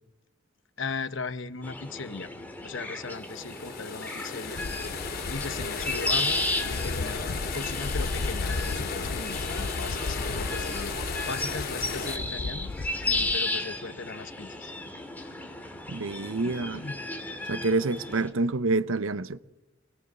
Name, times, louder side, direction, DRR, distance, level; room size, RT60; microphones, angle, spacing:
voice 1, 0.8-2.3 2.6-4.6 5.3-7.2 7.5-10.9 11.2-12.7 13.0-14.7 16.4-17.0, left 4 dB, 65° left, 1.1 m, -38 dB
sound 1, 1.6-18.3, left 2 dB, 10° left, 2.8 m, -34 dB
sound 2, 3.2-12.2, left 5 dB, 50° left, 3.7 m, -35 dB
sound 3, 4.5-13.4, left 3 dB, 85° left, 0.7 m, -35 dB
voice 2, 15.9-16.8 17.5-19.4, right 3 dB, 80° right, 0.8 m, -27 dB
27.5 x 20.5 x 6.8 m
head